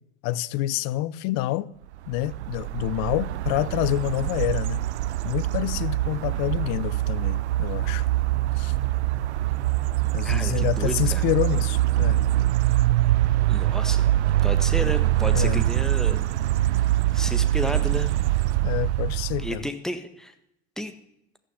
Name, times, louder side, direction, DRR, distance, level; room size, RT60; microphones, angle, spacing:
voice 1, 0.2-1.7 2.1-4.8 5.2-8.0 8.6-8.7 10.1-12.2 15.3-15.6 18.6-19.6, left 15 dB, 55° left, 0.8 m, -27 dB
sound 1, 2.1-19.7, right 14 dB, 80° right, 0.5 m, -24 dB
voice 2, 10.2-11.2 13.5-14.1 14.4-16.2 17.1-18.1 19.4-20.3 20.8-20.9, left 1 dB, ahead, 1.5 m, -32 dB
14.0 x 6.4 x 9.9 m
hypercardioid pair, 75°, 33 cm